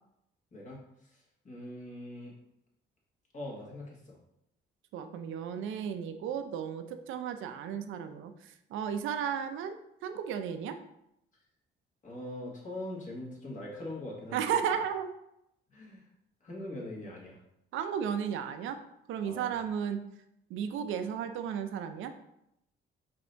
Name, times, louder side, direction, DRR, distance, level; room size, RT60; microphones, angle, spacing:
voice 1, 1.1-2.3 3.3-4.2 12.0-14.6 15.7-16.1 16.4-17.4 19.2-19.6, left 1 dB, 40° left, -4 dB, 1.7 m, -42 dB
voice 2, 4.9-9.8 10.0-10.8 14.3-15.1 17.7-18.8 19.1-20.0 20.5-22.1, right 8 dB, 80° right, 8 dB, 0.5 m, -34 dB
5.1 x 2.8 x 3.3 m, 0.80 s
cardioid pair, 90°, 20 cm